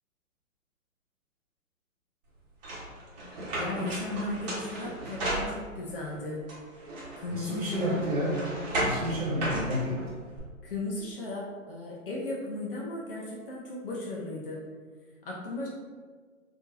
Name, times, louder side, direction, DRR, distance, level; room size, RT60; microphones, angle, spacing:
sound 1, 2.6-6.0 6.5-10.4, right 1 dB, 30° right, 1.1 m, -35 dB
voice 1, 3.6-6.4 7.2-8.0 10.6-14.6 15.2-15.7, left 2 dB, 45° left, -4 dB, 0.7 m, -36 dB
voice 2, 7.3-8.4 8.7-10.0, equal, 90° right, -4 dB, 1.3 m, -30 dB
3.5 x 2.8 x 2.6 m, 1.5 s
figure-of-eight pair, 130°, 40 cm